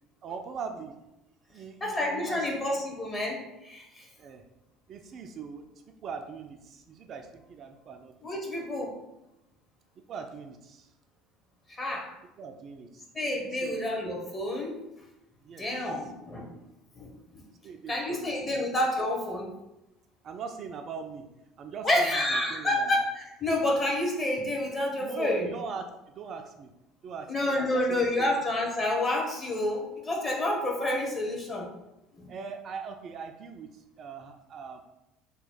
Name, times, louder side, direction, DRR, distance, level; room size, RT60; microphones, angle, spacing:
voice 1, 0.2-0.9 1.5-2.6 4.2-4.4 4.9-5.6 6.0-8.3 10.1-10.9 12.4-13.0 13.5-13.8 15.4-15.9 17.6-18.6 20.2-21.2 21.6-22.9 25.0-26.7 27.0-28.3 32.3-34.8, right 5 dB, 45° right, 5 dB, 0.3 m, -41 dB
voice 2, 1.8-4.1 8.2-8.9 11.7-12.1 13.1-14.8 15.6-16.5 16.9-17.4 17.9-19.5 21.8-25.5 27.3-31.7 32.2-32.3, left 1 dB, 25° left, 0 dB, 1.0 m, -29 dB
3.0 x 2.2 x 4.0 m, 0.93 s
figure-of-eight pair, 60°, 0 cm